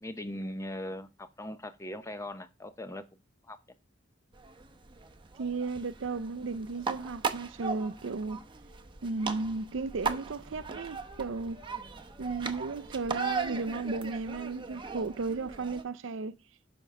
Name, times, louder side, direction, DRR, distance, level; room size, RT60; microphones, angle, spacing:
voice 1, 0.0-3.1 3.5-3.6, left 1 dB, 15° left, 0.7 m, -39 dB
sound 1, 4.3-15.8, right 5 dB, 25° right, 0.8 m, -38 dB
voice 2, 5.3-8.4 9.0-11.6 12.2-16.4, right 3 dB, 70° right, 0.5 m, -34 dB
7.1 x 5.4 x 5.9 m
head